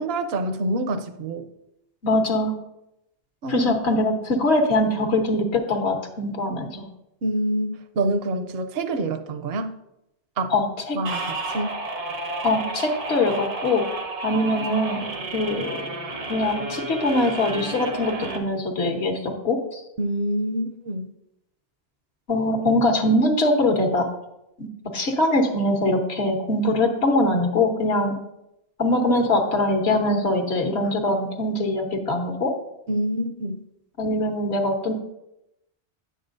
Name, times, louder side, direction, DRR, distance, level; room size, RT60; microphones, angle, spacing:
voice 1, 0.0-1.5 3.4-3.8 7.2-9.8 10.4-10.5 10.9-11.8 20.0-21.1 32.9-33.6, right 1 dB, 65° right, 8 dB, 0.9 m, -26 dB
voice 2, 2.0-2.5 3.5-6.8 10.5-11.0 12.4-13.8 14.2-15.0 15.3-15.8 16.3-19.8 22.3-24.1 24.6-28.2 28.8-32.5 34.0-34.9, left 1 dB, 70° left, 3 dB, 1.4 m, -22 dB
sound 1, 11.0-18.4, right 2 dB, 90° right, 1.5 m, -31 dB
10.0 x 7.9 x 2.6 m, 0.86 s
omnidirectional pair, 1.1 m